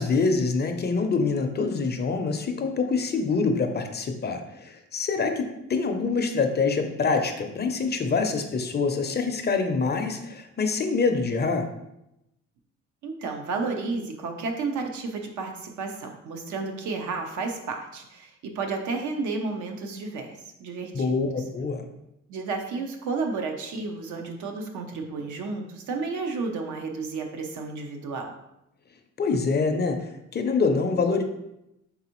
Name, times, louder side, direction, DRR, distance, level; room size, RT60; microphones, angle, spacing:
voice 1, 0.0-11.7 20.9-21.8 29.2-30.0 30.3-31.2, left 4 dB, 35° left, 5 dB, 0.5 m, -25 dB
voice 2, 13.0-20.3 20.6-21.0 22.3-28.3, right 4 dB, 75° right, 3 dB, 0.7 m, -32 dB
4.0 x 3.4 x 2.9 m, 0.86 s
cardioid pair, 90°, 30 cm